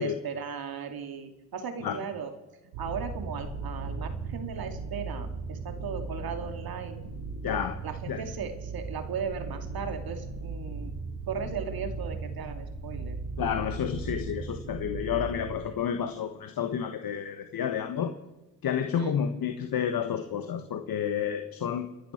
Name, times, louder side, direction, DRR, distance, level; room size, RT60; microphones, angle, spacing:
voice 1, 0.0-2.3 2.8-7.1 7.8-10.9 11.3-13.2 18.9-19.2, right 6 dB, 55° right, 6 dB, 2.5 m, -37 dB
sound 1, 2.7-15.6, right 3 dB, 85° right, 3.7 m, -37 dB
voice 2, 7.4-7.8 8.1-8.2 13.4-18.1 18.6-22.1, left 8 dB, 55° left, 7 dB, 1.4 m, -30 dB
30.0 x 11.0 x 4.5 m, 1.1 s
supercardioid pair, 60°, 43 cm